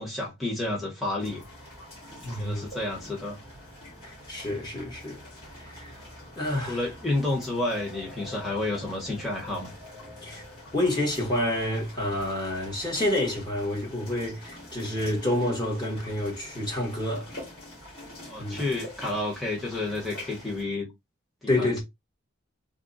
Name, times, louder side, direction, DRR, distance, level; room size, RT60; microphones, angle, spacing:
voice 1, 0.0-1.4 2.4-3.4 6.5-9.7 18.3-20.9 21.4-21.8, left 2 dB, ahead, 0.9 m, -30 dB
sound 1, 1.2-20.6, left 1 dB, 45° left, 2.5 m, -45 dB
voice 2, 2.2-2.6 4.0-5.2 5.5-6.0 6.4-6.8 10.2-10.4 10.7-17.3 18.4-18.6 21.5-21.8, left 1 dB, 20° left, 1.1 m, -28 dB
3.6 x 2.1 x 3.8 m
head